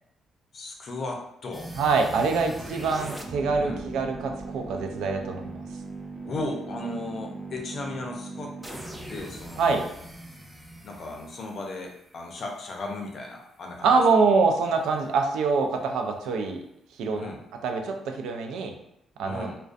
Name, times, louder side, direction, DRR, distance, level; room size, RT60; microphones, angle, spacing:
voice 1, 0.5-1.7 2.1-2.6 3.6-3.8 6.2-8.8 9.1-9.8 10.8-14.0 17.1-17.4 19.2-19.6, left 2 dB, 55° left, 1 dB, 0.5 m, -36 dB
sound 1, 1.5-12.5, right 2 dB, 5° right, 0.4 m, -40 dB
voice 2, 1.8-5.6 9.6-9.8 13.8-16.6 17.0-17.2 17.6-18.7 19.2-19.5, right 4 dB, 85° right, 4 dB, 0.3 m, -24 dB
2.4 x 2.1 x 2.4 m, 0.77 s
cardioid pair, 90°, 0 cm